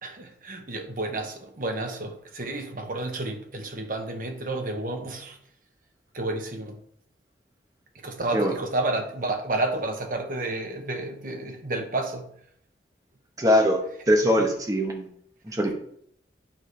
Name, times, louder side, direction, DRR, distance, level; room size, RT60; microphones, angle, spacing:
voice 1, 0.0-5.4 6.1-6.8 7.9-12.3 14.4-14.5, right 2 dB, 50° right, 1.0 m, -31 dB
voice 2, 13.4-13.8 14.1-15.1 15.4-15.7, equal, 20° right, 1.0 m, -22 dB
8.9 x 4.8 x 3.3 m
head